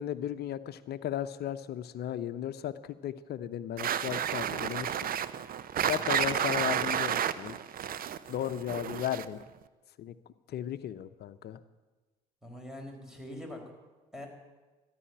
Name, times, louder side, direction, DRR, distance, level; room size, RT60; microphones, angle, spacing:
voice 1, 0.0-5.1 5.9-7.6 8.3-9.4 10.0-10.1 10.5-11.6, left 11 dB, 55° left, 13 dB, 0.8 m, -35 dB
sound 1, 3.8-9.4, right 9 dB, 50° right, 0.8 m, -31 dB
voice 2, 5.9-6.3 12.4-13.7 14.1-14.3, left 1 dB, 5° right, 3 dB, 4.5 m, -44 dB
14.0 x 11.0 x 8.8 m, 1.2 s
hypercardioid pair, 55°, 20 cm